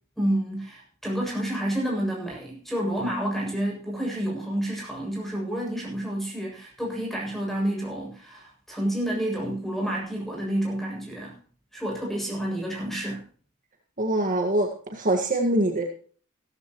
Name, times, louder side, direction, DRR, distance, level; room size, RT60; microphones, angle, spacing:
voice 1, 0.2-11.4 11.7-13.2, right 1 dB, ahead, -2 dB, 7.4 m, -29 dB
voice 2, 14.0-15.8, right 1 dB, 40° right, 2 dB, 1.8 m, -24 dB
16.0 x 14.5 x 3.1 m, 0.43 s
head